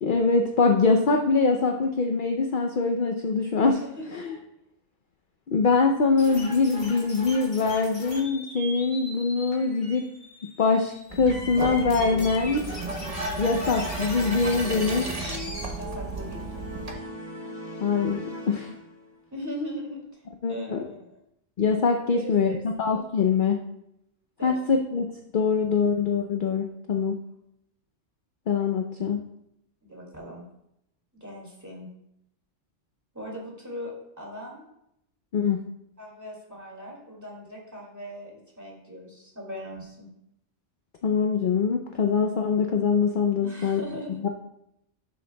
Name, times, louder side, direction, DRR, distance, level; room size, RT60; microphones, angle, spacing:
voice 1, 0.0-3.8 4.2-4.3 5.5-10.1 10.4-12.6 13.4-15.1 17.8-18.2 18.5-18.7 20.4-20.8 21.6-22.5 22.8-23.6 24.4-25.1 25.3-27.2 28.5-29.2 35.3-35.6 41.0-43.8 44.2-44.3, left 4 dB, 55° left, 3 dB, 0.7 m, -23 dB
voice 2, 4.0-4.4 15.8-16.7 19.3-20.2 20.5-21.2 22.1-22.9 24.4-24.6 29.8-30.4 31.1-31.9 33.1-34.6 36.0-40.1 43.4-44.2, equal, 15° right, -3 dB, 2.2 m, -39 dB
sound 1, 6.2-15.7, left 1 dB, 80° left, 2.4 m, -40 dB
sound 2, 11.1-16.9, right 2 dB, 35° right, 0.9 m, -34 dB
sound 3, 14.6-19.3, equal, 35° left, 2.3 m, -40 dB
12.0 x 6.6 x 2.2 m, 0.79 s
omnidirectional pair, 1.2 m